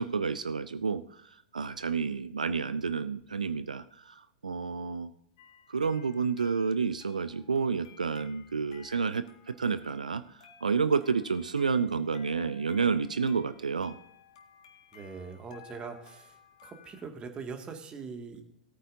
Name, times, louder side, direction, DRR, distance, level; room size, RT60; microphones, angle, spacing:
voice 1, 0.0-5.1 5.7-13.9, right 5 dB, 85° right, 13 dB, 0.5 m, -30 dB
sound 1, 5.4-17.1, left 7 dB, 60° left, 1.8 m, -57 dB
voice 2, 14.9-18.4, right 5 dB, 25° right, 5 dB, 2.1 m, -42 dB
18.0 x 9.1 x 2.7 m, 0.73 s
figure-of-eight pair, 100°, 4 cm